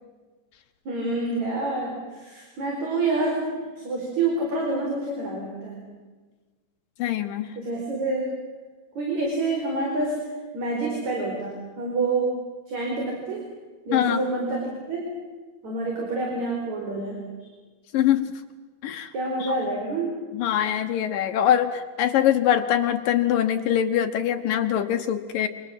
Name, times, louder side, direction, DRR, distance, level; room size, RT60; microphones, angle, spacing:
voice 1, 0.9-3.5 3.8-5.8 7.6-8.4 9.0-12.4 12.7-13.5 13.9-15.1 15.6-17.2 19.1-20.1, right 2 dB, 40° right, 0 dB, 5.6 m, -27 dB
voice 2, 7.0-7.5 13.9-14.2 17.9-18.3 18.8-19.1 19.4-19.5 20.3-25.5, left 10 dB, 70° left, 7 dB, 2.3 m, -23 dB
28.0 x 25.5 x 7.7 m, 1.3 s
omnidirectional pair, 5.1 m